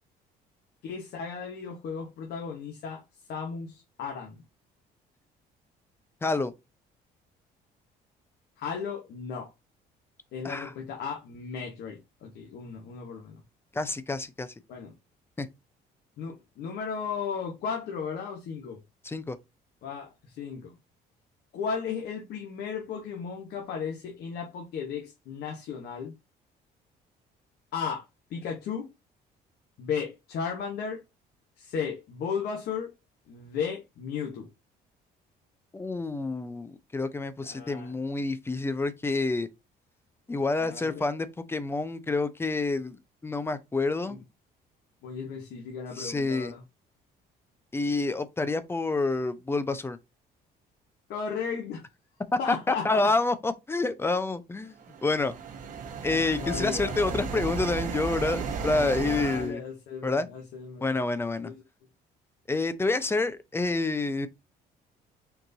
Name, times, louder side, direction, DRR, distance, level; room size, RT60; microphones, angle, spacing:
voice 1, 0.8-3.0 3.3-4.4 8.6-9.5 10.3-13.4 14.7-14.9 16.2-18.8 19.8-20.7 21.5-26.1 27.7-28.9 29.8-31.0 31.6-32.9 33.3-34.5 37.4-37.9 40.6-41.0 44.1-44.2 45.0-46.6 51.1-51.8 52.4-53.1 56.4-57.3 59.0-60.8 61.4-61.6, left 6 dB, 70° left, 1.2 m, -35 dB
voice 2, 6.2-6.5 10.4-10.7 13.7-14.5 15.4-15.5 19.0-19.4 35.7-39.5 40.3-43.0 43.2-44.2 45.9-46.5 47.7-50.0 52.5-55.3 56.0-59.6 60.0-60.3 60.8-61.5 62.5-64.3, left 3 dB, 15° left, 0.6 m, -28 dB
sound 1, 54.8-59.5, right 5 dB, 50° right, 1.1 m, -34 dB
4.6 x 2.6 x 3.9 m
cardioid pair, 110°, 17 cm